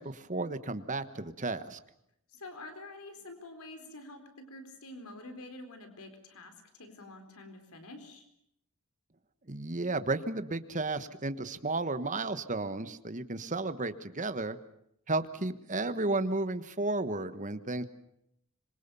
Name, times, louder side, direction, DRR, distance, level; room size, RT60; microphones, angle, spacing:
voice 1, 0.0-1.8 9.5-14.6 15.1-17.9, right 2 dB, 35° right, 11 dB, 1.3 m, -33 dB
voice 2, 2.3-8.3, left 2 dB, 80° left, 7 dB, 4.2 m, -47 dB
26.0 x 23.5 x 7.0 m, 0.74 s
head